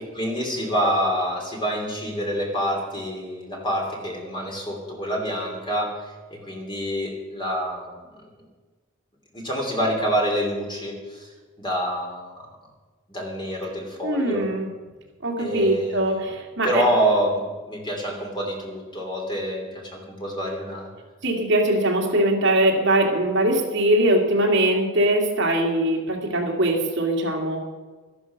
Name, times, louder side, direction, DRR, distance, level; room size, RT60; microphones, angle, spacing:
voice 1, 0.1-6.0 6.3-8.0 9.3-11.3 11.6-12.4 13.1-14.4 15.4-16.2 16.6-20.9, equal, 20° left, 0 dB, 2.9 m, -27 dB
voice 2, 14.0-14.7 15.2-16.8 21.2-27.6, right 1 dB, 55° right, 0 dB, 2.4 m, -21 dB
13.0 x 12.0 x 5.9 m, 1.3 s
head